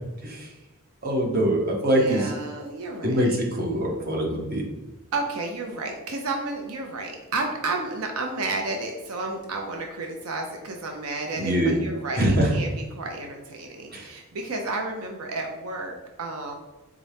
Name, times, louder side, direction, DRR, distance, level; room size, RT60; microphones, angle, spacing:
voice 1, 1.0-2.2 3.0-4.6 11.4-11.8 12.2-12.5 13.9-14.1, right 1 dB, 45° right, -1 dB, 0.9 m, -23 dB
voice 2, 1.8-3.5 5.1-16.5, right 3 dB, 80° right, 3 dB, 0.6 m, -32 dB
4.1 x 3.6 x 3.4 m, 1.1 s
head